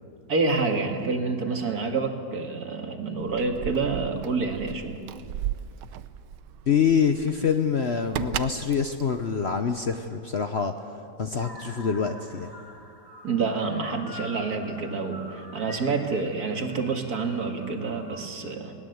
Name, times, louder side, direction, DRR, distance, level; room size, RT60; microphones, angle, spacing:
voice 1, 0.3-5.0 13.2-18.8, right 4 dB, 60° right, 4 dB, 2.3 m, -28 dB
Keys jangling, 3.2-10.1, right 11 dB, 80° right, 1.3 m, -36 dB
voice 2, 6.7-12.5, left 6 dB, 50° left, 7 dB, 0.9 m, -26 dB
sound 1, 11.4-18.3, left 2 dB, 15° left, 1.9 m, -45 dB
21.0 x 18.5 x 7.9 m, 2.5 s
omnidirectional pair, 1.9 m